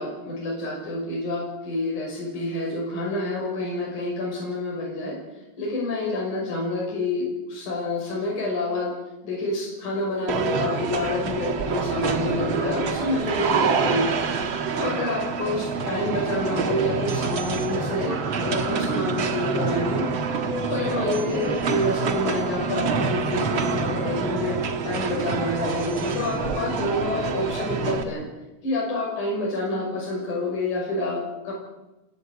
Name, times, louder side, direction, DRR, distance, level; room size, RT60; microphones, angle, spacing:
voice 1, 0.0-5.2 5.6-8.9 9.2-20.1 20.7-24.6 24.8-28.3 28.6-31.5, left 2 dB, 45° left, -3 dB, 7.3 m, -28 dB
sound 1, 10.3-28.0, right 5 dB, 90° right, 1.1 m, -26 dB
29.0 x 12.5 x 8.5 m, 1.0 s
omnidirectional pair, 5.1 m